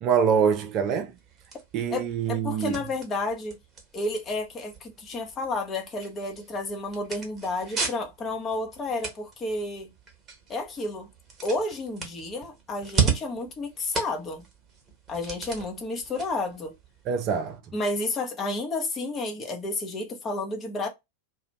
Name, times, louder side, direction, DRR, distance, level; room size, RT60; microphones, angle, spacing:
voice 1, 0.0-1.1 1.7-2.8 17.1-17.6, right 7 dB, 40° right, 0.5 m, -24 dB
sound 1, 0.6-17.6, right 5 dB, 20° right, 1.0 m, -36 dB
voice 2, 1.9-3.6 3.9-9.9 10.5-11.1 11.4-14.4 15.1-16.7 17.7-20.9, left 2 dB, 25° left, 0.8 m, -31 dB
2.5 x 2.2 x 2.9 m
figure-of-eight pair, 90°, 0 cm